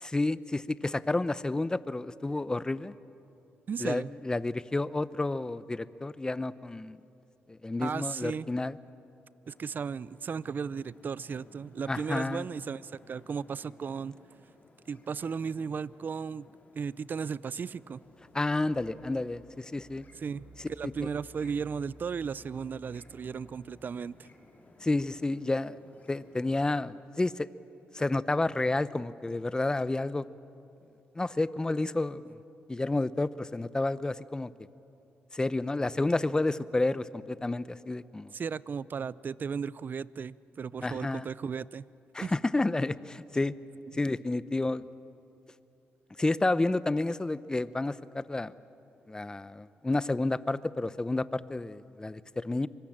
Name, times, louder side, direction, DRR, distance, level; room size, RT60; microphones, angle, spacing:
voice 1, 0.0-2.9 3.8-7.0 7.5-8.8 11.9-12.5 18.3-20.1 24.8-25.8 26.1-27.5 27.9-30.2 31.2-32.3 32.7-34.5 35.3-38.3 40.8-41.3 42.1-43.5 43.9-44.8 46.2-48.5 49.1-52.7, left 2 dB, 15° left, 16 dB, 0.7 m, -30 dB
voice 2, 3.7-4.1 7.8-8.5 9.5-14.2 14.9-16.4 16.7-18.0 20.1-24.3 38.3-41.8 42.2-42.3 43.9-44.0, right 6 dB, 45° right, 20 dB, 0.5 m, -35 dB
sound 1, 9.4-26.7, left 2 dB, 35° left, 3.9 m, -59 dB
sound 2, 17.7-24.0, right 3 dB, 75° right, 7.8 m, -57 dB
24.5 x 22.0 x 8.8 m, 2.8 s
cardioid pair, 80°, 4 cm